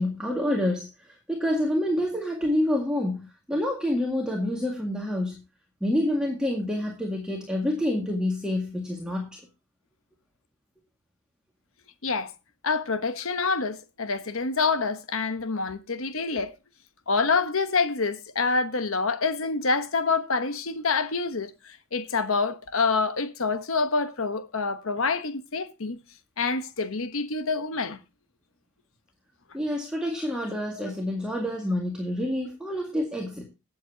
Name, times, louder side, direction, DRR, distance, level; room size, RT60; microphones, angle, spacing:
voice 1, 0.0-5.4 5.8-9.4 29.5-33.4, left 1 dB, 5° right, 2.0 m, -27 dB
voice 2, 12.0-12.3 12.6-16.5 17.1-26.0 26.4-28.0 30.7-30.8, left 4 dB, 65° left, 1.1 m, -27 dB
19.0 x 7.7 x 2.8 m
head